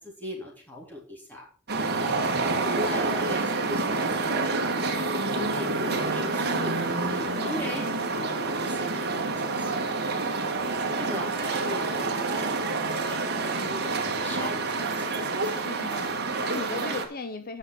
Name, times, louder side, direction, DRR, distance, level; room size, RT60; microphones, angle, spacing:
voice 1, 0.0-1.4 2.4-4.8 5.0-9.9 10.6-15.5 15.8-16.1, left 1 dB, 10° left, -2 dB, 3.6 m, -40 dB
sound 1, 1.7-17.0, right 3 dB, 45° right, 1.9 m, -28 dB
voice 2, 2.5-3.0 7.4-7.7 11.6-12.0 15.5-17.6, left 3 dB, 40° left, 10 dB, 0.6 m, -38 dB
9.6 x 6.2 x 6.4 m, 0.41 s
head